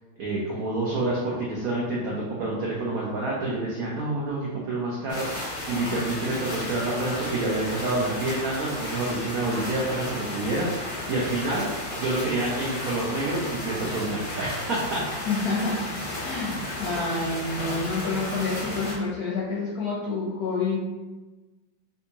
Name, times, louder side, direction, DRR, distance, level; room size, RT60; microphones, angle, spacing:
voice 1, 0.2-11.7 12.0-15.4, right 2 dB, 80° right, -5 dB, 0.8 m, -28 dB
sound 1, 5.1-18.9, left 1 dB, 40° left, 0.7 m, -34 dB
voice 2, 15.3-15.8 16.2-20.9, left 3 dB, 65° left, -6 dB, 1.0 m, -28 dB
3.5 x 2.7 x 2.8 m, 1.2 s
omnidirectional pair, 2.2 m